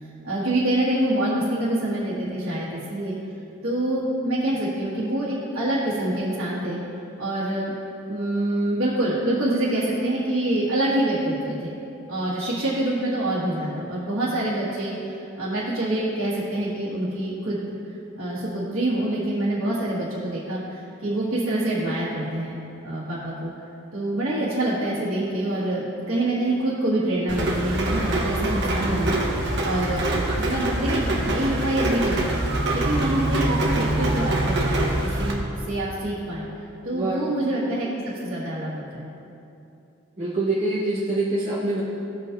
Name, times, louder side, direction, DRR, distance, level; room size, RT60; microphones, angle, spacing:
voice 1, 0.2-3.2 3.6-6.8 7.2-7.7 8.1-11.7 12.1-17.6 18.2-22.5 22.8-23.5 23.9-30.1 30.3-32.4 32.7-36.5 36.8-37.9 38.2-39.1, right 1 dB, 75° right, -10 dB, 1.8 m, -26 dB
Rain, 27.3-35.3, right 1 dB, 50° right, 1.0 m, -24 dB
voice 2, 36.9-37.2 40.2-41.8, right 2 dB, 30° right, -11 dB, 1.1 m, -25 dB
15.5 x 5.4 x 2.6 m, 2.7 s
head